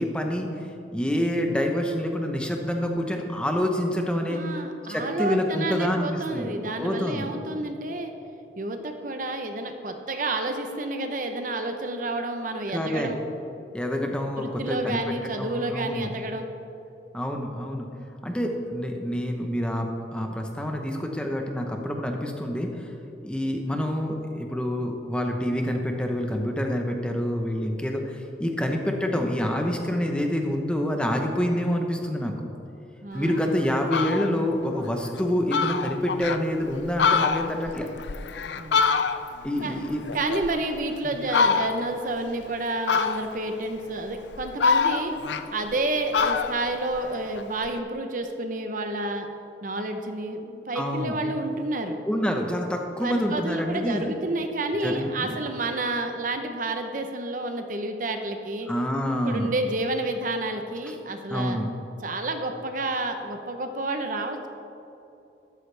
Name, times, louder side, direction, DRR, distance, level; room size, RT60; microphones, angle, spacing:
voice 1, 0.0-4.4 4.9-6.5 6.8-7.3 7.6-7.7 12.7-13.1 13.7-16.1 17.1-17.9 18.2-22.9 23.2-32.3 33.1-37.9 39.4-40.1 41.0-41.1 50.7-51.2 52.1-54.1 54.8-55.4 58.7-59.5 60.9-61.0 61.3-61.7, equal, 5° left, 2 dB, 0.9 m, -27 dB
voice 2, 4.3-8.1 8.6-13.2 14.4-16.5 33.0-33.4 38.6-38.8 39.6-39.7 40.1-45.1 45.5-49.3 49.6-52.0 53.0-58.7 59.2-61.6 62.0-64.5, right 2 dB, 45° right, 6 dB, 0.8 m, -30 dB
Fowl, 33.3-33.4 33.8-34.4 34.8-34.9 35.2-35.3 35.5-36.4 36.8-39.5 39.8-40.9 41.3-42.0 42.9-43.5 44.1-45.8 46.1-47.7, left 5 dB, 75° left, 0.5 m, -25 dB
13.0 x 12.5 x 3.4 m, 2.9 s
head